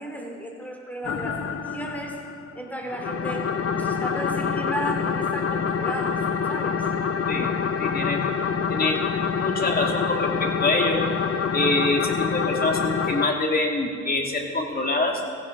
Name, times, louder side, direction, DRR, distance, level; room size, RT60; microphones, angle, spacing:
voice 1, 0.0-2.2 2.5-6.9, right 1 dB, 5° left, 1 dB, 3.5 m, -34 dB
sound 1, 1.0-2.5 2.9-13.3, left 6 dB, 50° left, 1.1 m, -26 dB
voice 2, 7.8-8.2 8.7-9.0 9.3-11.0 11.5-15.3, left 2 dB, 30° left, 1 dB, 2.7 m, -25 dB
17.0 x 15.5 x 5.4 m, 2.1 s
cardioid pair, 90°, 30 cm